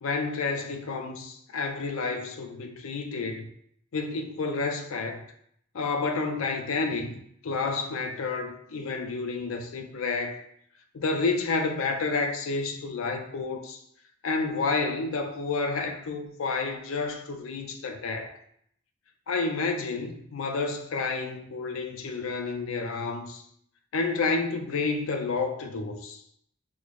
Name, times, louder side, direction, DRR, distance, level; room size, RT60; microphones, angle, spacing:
voice 1, 0.0-3.5 3.9-5.2 5.7-7.2 7.4-10.4 10.9-13.8 14.2-18.3 19.3-23.4 23.9-26.2, left 4 dB, 85° left, 0.5 m, -30 dB
3.8 x 2.0 x 3.1 m
head